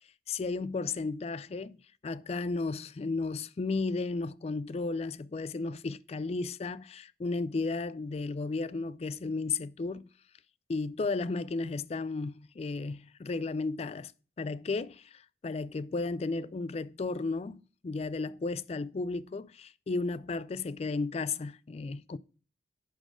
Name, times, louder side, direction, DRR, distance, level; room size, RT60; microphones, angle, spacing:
voice 1, 0.3-1.8 2.0-10.1 10.7-14.1 14.4-22.2, left 3 dB, 35° left, 0.3 m, -34 dB
11.0 x 4.1 x 5.0 m
head